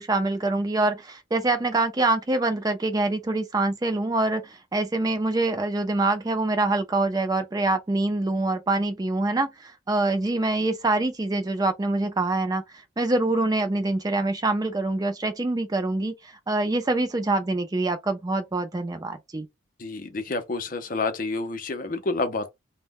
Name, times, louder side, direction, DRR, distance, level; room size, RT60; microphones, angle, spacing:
voice 1, 0.0-12.6 13.0-19.5, right 2 dB, 20° right, 0.4 m, -25 dB
voice 2, 19.8-22.5, left 3 dB, 40° left, 0.5 m, -29 dB
2.1 x 2.1 x 3.4 m
head